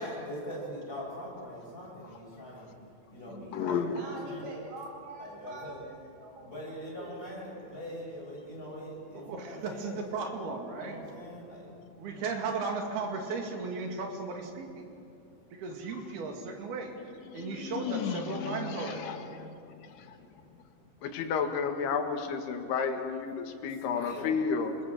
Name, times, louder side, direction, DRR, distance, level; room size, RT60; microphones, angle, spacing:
voice 1, 0.0-2.7 3.1-4.5 5.2-5.8 6.4-10.0 10.8-11.7 12.0-12.2 23.9-24.3, equal, 15° left, -5 dB, 7.8 m, -42 dB
voice 2, 3.3-4.0 10.8-10.9 15.9-16.3 17.2-20.3, left 7 dB, 60° left, 6 dB, 2.0 m, -36 dB
voice 3, 3.9-7.3, right 2 dB, 35° right, -1 dB, 5.2 m, -45 dB
voice 4, 9.1-11.1 12.0-14.8 15.5-17.0 17.3-19.0, right 4 dB, 75° right, 3 dB, 4.4 m, -36 dB
voice 5, 21.0-24.8, left 5 dB, 85° left, 6 dB, 3.7 m, -31 dB
28.0 x 21.0 x 7.6 m, 2.7 s
omnidirectional pair, 4.5 m